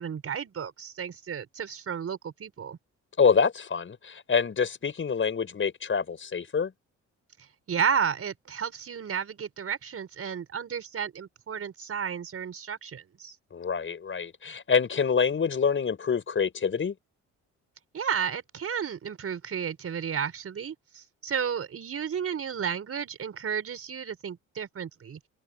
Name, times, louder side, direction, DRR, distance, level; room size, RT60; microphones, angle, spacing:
voice 1, 0.0-2.8 7.7-13.3 17.9-25.2, right 7 dB, 50° right, 5.5 m, -32 dB
voice 2, 3.2-6.7 13.5-16.9, left 6 dB, 40° left, 5.9 m, -26 dB
cardioid pair, 90°, 30 cm